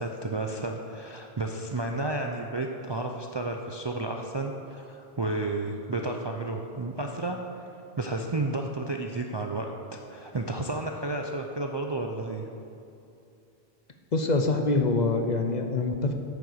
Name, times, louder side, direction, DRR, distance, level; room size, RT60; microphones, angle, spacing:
voice 1, 0.0-7.4 8.0-12.5, right 2 dB, 35° right, 2 dB, 0.4 m, -32 dB
voice 2, 14.1-16.1, left 3 dB, 45° left, 4 dB, 0.8 m, -25 dB
8.8 x 6.8 x 6.5 m, 2.6 s
omnidirectional pair, 1.1 m